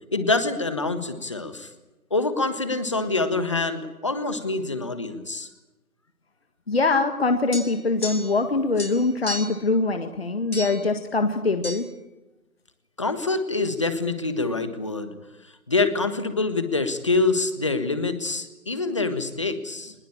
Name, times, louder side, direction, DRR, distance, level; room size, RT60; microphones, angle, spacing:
voice 1, 0.1-1.7 2.1-5.5 13.0-15.1 15.4-19.9, left 3 dB, 20° left, 10 dB, 1.4 m, -25 dB
voice 2, 6.7-11.9, left 3 dB, 40° left, 7 dB, 1.7 m, -23 dB
sound 1, 7.5-8.5 8.8-9.7 10.5-10.9 11.6-11.8, left 2 dB, 90° left, 6.7 m, -34 dB
24.0 x 21.0 x 8.6 m, 1.0 s
figure-of-eight pair, 170°, 44 cm